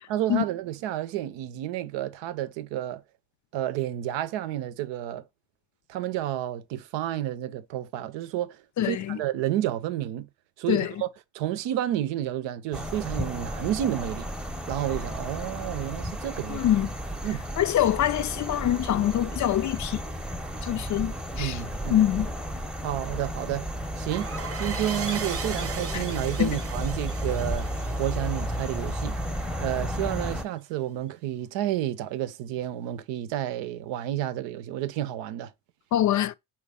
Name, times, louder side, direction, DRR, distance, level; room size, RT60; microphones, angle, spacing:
voice 1, 0.1-3.0 3.5-5.2 5.9-8.6 8.8-10.3 10.6-11.1 11.3-14.3 14.7-16.7 17.2-17.4 21.4-22.1 22.8-23.7 24.0-24.3 24.6-27.7 28.0-29.2 29.6-35.5, right 12 dB, 75° right, 0.7 m, -30 dB
voice 2, 8.8-9.2 10.7-10.9 16.5-16.9 17.6-20.0 20.6-21.6 21.9-22.3 25.9-26.0 26.4-26.5 35.9-36.3, left 12 dB, 45° left, 0.4 m, -24 dB
sound 1, 12.7-30.4, equal, ahead, 0.7 m, -33 dB
sound 2, 24.1-29.4, right 5 dB, 30° right, 0.8 m, -38 dB
4.2 x 3.3 x 3.4 m
hypercardioid pair, 60°, 44 cm